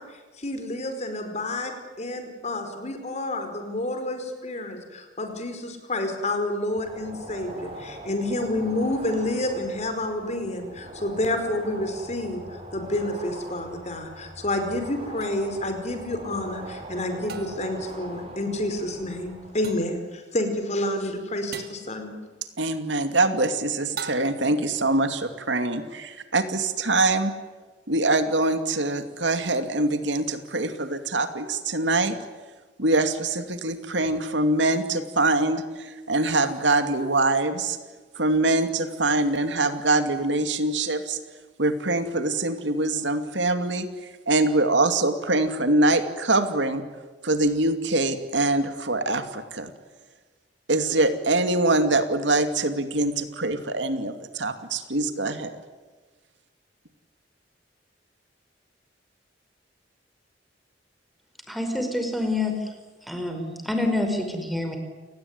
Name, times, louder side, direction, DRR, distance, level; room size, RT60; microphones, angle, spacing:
voice 1, 0.0-22.2, left 1 dB, 40° left, 7 dB, 5.0 m, -29 dB
sound 1, 6.7-19.7, right 1 dB, 35° right, 6.4 m, -41 dB
sound 2, 15.2-15.3 17.3-17.8 19.6-20.0 21.5-21.9 24.0-24.6, right 5 dB, 60° right, 2.0 m, -39 dB
voice 2, 22.6-27.3 27.9-32.1 32.8-37.8 38.2-41.2 41.6-43.9 44.3-46.8 47.2-49.7 50.7-55.6, right 2 dB, 85° right, 8 dB, 2.6 m, -24 dB
voice 3, 61.5-62.7 63.1-64.8, left 2 dB, ahead, 5 dB, 4.9 m, -27 dB
29.5 x 19.0 x 9.7 m, 1.3 s
head